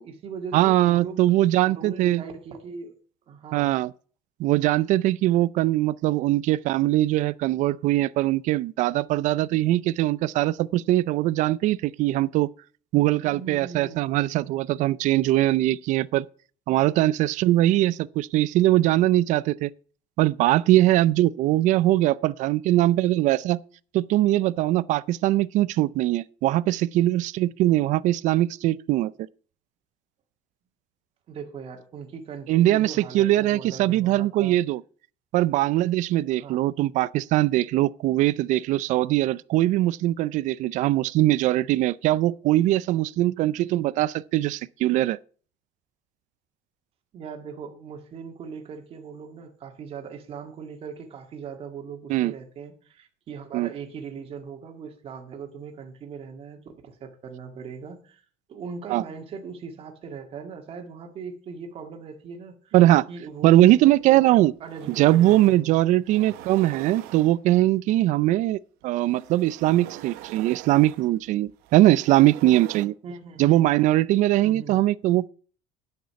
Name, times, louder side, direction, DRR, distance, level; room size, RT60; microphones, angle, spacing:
voice 1, 0.0-1.2 1.7-2.9 3.3-3.8 13.2-14.1 31.3-34.6 36.3-36.6 47.1-58.2 58.5-62.7 63.1-65.8 73.0-73.7 74.4-74.8, right 6 dB, 40° right, 1.9 m, -39 dB
voice 2, 0.5-2.2 3.5-3.9 4.4-12.5 12.9-16.3 16.7-19.7 20.2-23.6 23.9-29.1 32.5-34.8 35.3-45.2 52.1-52.3 53.5-53.7 58.9-59.0 62.7-63.1 63.4-64.5 65.0-68.6 68.8-72.9 73.4-75.3, right 15 dB, 55° right, 0.4 m, -21 dB
sound 1, 64.0-64.1 64.5-65.6 66.0-67.7 68.8-72.9, right 14 dB, 80° right, 1.0 m, -43 dB
9.4 x 6.7 x 6.8 m
cardioid pair, 165°, 15 cm